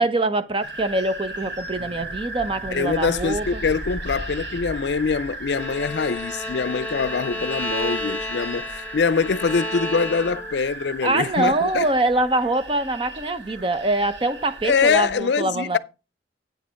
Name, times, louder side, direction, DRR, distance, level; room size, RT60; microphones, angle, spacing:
voice 1, 0.0-3.6 11.0-15.8, right 2 dB, 30° right, 0.8 m, -24 dB
sound 1, 0.6-15.2, right 2 dB, 75° right, 2.0 m, -36 dB
voice 2, 2.7-11.9 14.6-15.8, left 5 dB, 70° left, 0.5 m, -24 dB
Bowed string instrument, 5.5-10.7, left 1 dB, 10° left, 1.1 m, -31 dB
9.0 x 5.2 x 5.7 m
head